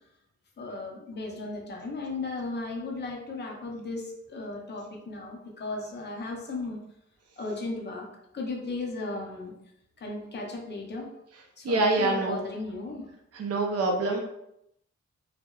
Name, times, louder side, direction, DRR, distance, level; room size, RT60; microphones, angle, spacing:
voice 1, 0.6-6.8 7.4-8.1 8.3-9.5 10.0-11.1 11.6-13.1, left 2 dB, 35° left, -1 dB, 0.5 m, -36 dB
voice 2, 11.6-12.4 13.3-14.2, right 2 dB, 55° right, 1 dB, 0.4 m, -25 dB
2.6 x 2.0 x 2.2 m, 0.79 s
wide cardioid pair, 180°, 29 cm